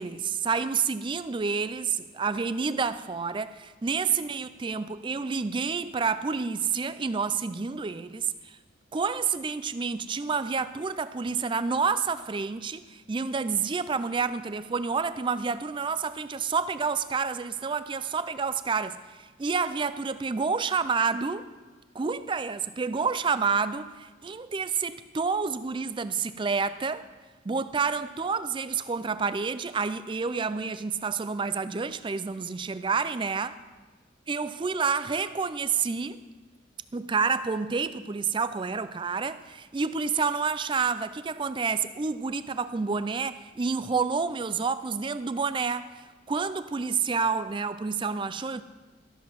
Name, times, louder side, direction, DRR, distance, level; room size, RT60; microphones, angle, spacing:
voice 1, 0.0-8.6 8.9-21.5 21.9-27.1 27.5-33.5 34.3-36.2 36.9-46.0 46.3-48.6, right 5 dB, 25° right, 0.3 m, -29 dB
13.5 x 7.4 x 6.1 m
head